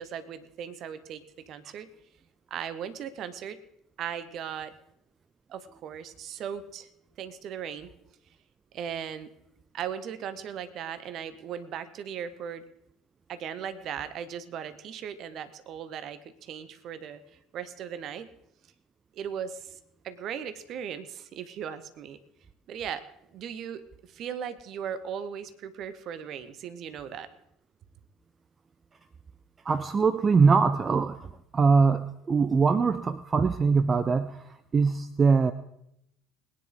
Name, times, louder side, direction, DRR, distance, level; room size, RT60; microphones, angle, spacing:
voice 1, 0.0-1.9 2.5-3.6 4.0-4.7 5.5-6.9 7.2-7.9 8.7-9.3 9.7-12.6 13.3-17.2 17.5-18.3 19.1-19.7 20.0-22.2 22.7-23.0 23.3-27.3, right 8 dB, 50° right, 13 dB, 1.0 m, -37 dB
voice 2, 29.6-35.5, right 5 dB, 30° right, 13 dB, 0.6 m, -23 dB
20.5 x 9.9 x 4.0 m, 0.78 s
figure-of-eight pair, 60°, 0 cm